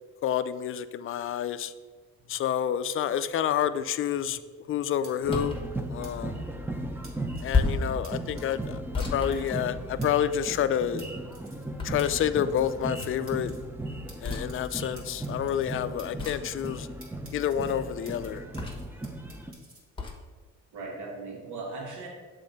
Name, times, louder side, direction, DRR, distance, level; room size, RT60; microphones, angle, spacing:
voice 1, 0.2-1.7 2.3-4.4 4.7-5.6 5.9-6.4 7.4-11.0 11.8-13.5 14.2-16.9 17.3-18.4, left 9 dB, 45° left, 12 dB, 0.4 m, -29 dB
sound 1, 5.0-5.1 6.0-6.1 7.0-7.6 8.0-8.1 8.4-8.7 9.0-9.1 9.3-9.7 10.0-10.1 10.3-10.7 11.0-11.1 11.3-11.7 12.0-12.1 12.3-12.8 13.0-13.6 14.1-15.7 16.0-16.7 17.0-18.3 18.5-19.8, right 2 dB, 45° right, 2.0 m, -51 dB
sound 2, 5.2-19.5, right 1 dB, 5° right, 0.6 m, -37 dB
sound 3, 5.3-5.7 7.5-7.9 8.9-10.1 11.8-12.4 14.2-14.5 16.2-16.6 18.6-19.0 20.0-20.2, left 4 dB, 15° left, 1.1 m, -30 dB
voice 2, 7.5-7.8 20.7-22.1, right 3 dB, 75° right, 0 dB, 1.4 m, -40 dB
6.7 x 3.7 x 5.2 m, 1.4 s
cardioid pair, 90°, 30 cm